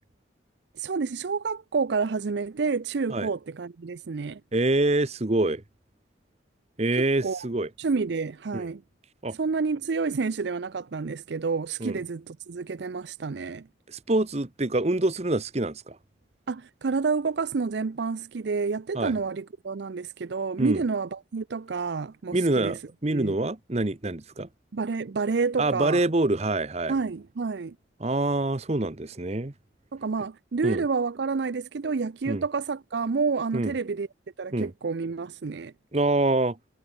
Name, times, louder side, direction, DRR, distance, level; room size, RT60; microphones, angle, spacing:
voice 1, 0.7-4.4 7.2-7.5 7.8-8.8 9.3-13.7 16.5-22.8 23.1-23.4 24.7-26.0 26.9-27.8 29.9-34.1 34.4-35.7, right 4 dB, 60° right, 0.5 m, -29 dB
voice 2, 4.5-5.6 6.8-7.7 8.5-8.7 9.2-9.4 11.8-12.0 13.9-16.0 18.9-19.1 20.6-20.8 22.3-24.5 25.6-26.9 28.0-29.5 30.6-30.8 32.3-32.4 33.5-33.7 34.5-34.7 35.9-36.6, right 2 dB, 35° right, 0.9 m, -25 dB
head